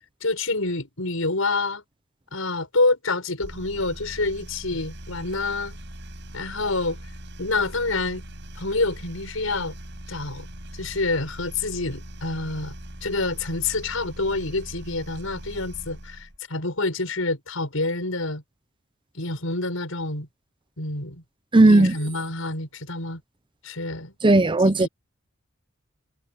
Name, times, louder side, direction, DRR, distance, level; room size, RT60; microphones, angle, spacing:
voice 1, 0.2-1.8 2.3-5.8 6.3-7.0 7.4-8.2 8.5-9.7 10.1-10.5 10.7-12.7 13.0-18.4 19.1-20.3 20.8-21.2 21.6-23.2 23.6-24.1 24.6-24.9, left 3 dB, 85° left, 6.0 m, -27 dB
sound 1, 3.4-16.4, right 1 dB, 60° right, 5.7 m, -41 dB
voice 2, 21.5-21.9 24.2-24.9, right 2 dB, 25° right, 0.7 m, -15 dB
head